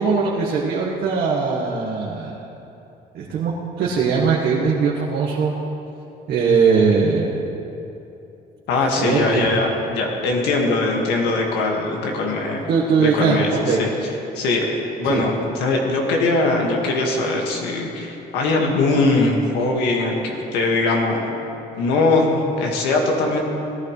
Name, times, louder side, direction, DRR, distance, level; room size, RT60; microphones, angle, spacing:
voice 1, 0.0-2.4 3.1-5.5 6.3-7.4 8.9-9.5 12.7-13.8 15.1-15.2, right 5 dB, 70° right, -4 dB, 1.6 m, -20 dB
voice 2, 8.7-12.7 13.0-13.9 14.4-21.3 21.7-23.4, left 2 dB, 85° left, 0 dB, 2.0 m, -21 dB
18.0 x 11.5 x 3.3 m, 2.8 s
cardioid pair, 110°, 17 cm